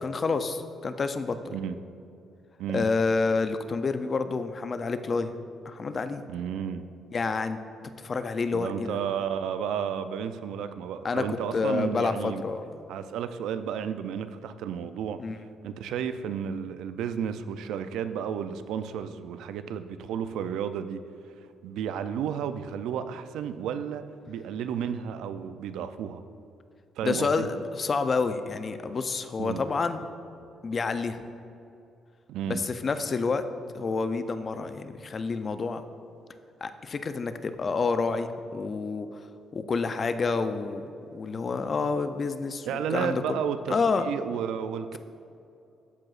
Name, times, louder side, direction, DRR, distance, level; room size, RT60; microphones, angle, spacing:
voice 1, 0.0-1.5 2.7-5.3 5.7-6.2 7.1-7.6 8.0-9.0 11.0-12.6 15.2-15.4 27.0-30.0 30.6-31.2 32.5-33.4 33.7-35.8 36.6-39.2 39.5-40.8 41.1-43.4 43.7-44.1, left 4 dB, 35° left, 10 dB, 0.4 m, -28 dB
voice 2, 6.3-6.8 8.5-12.4 12.9-21.0 21.4-26.2 27.0-27.5 29.4-29.6 32.3-32.6 42.7-43.8 44.0-45.0, right 8 dB, 85° right, 11 dB, 0.3 m, -32 dB
13.5 x 4.8 x 2.4 m, 2.6 s
cardioid pair, 130°, 0 cm